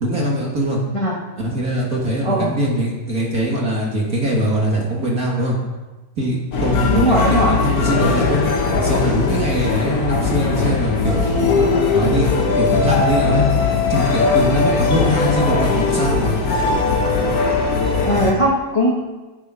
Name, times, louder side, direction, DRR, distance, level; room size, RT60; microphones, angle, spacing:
voice 1, 0.0-0.8 1.4-5.6 6.2-8.4 8.7-11.3 11.9-13.5 13.9-16.4, equal, 40° right, -2 dB, 1.5 m, -22 dB
sound 1, 6.5-18.3, left 4 dB, 60° left, 0.9 m, -19 dB
voice 2, 6.9-7.5 15.0-15.2 18.0-18.9, equal, 30° left, -4 dB, 0.5 m, -19 dB
11.0 x 7.6 x 5.6 m, 1.2 s
omnidirectional pair, 3.4 m